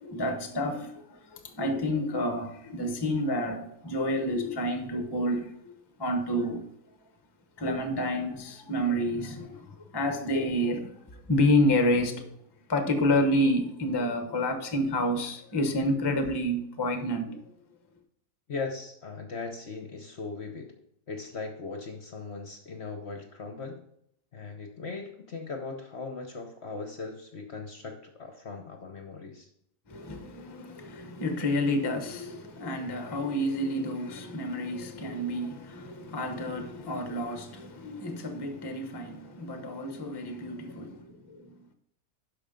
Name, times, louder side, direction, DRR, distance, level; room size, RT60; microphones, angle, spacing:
voice 1, 0.0-5.7 6.0-6.7 7.6-12.3 12.7-17.4 29.9-41.6, left 1 dB, 20° left, 0.7 m, -29 dB
voice 2, 18.5-20.7 21.1-23.8 24.3-29.5, left 4 dB, 50° left, 0.9 m, -39 dB
12.0 x 5.0 x 3.8 m
omnidirectional pair, 1.8 m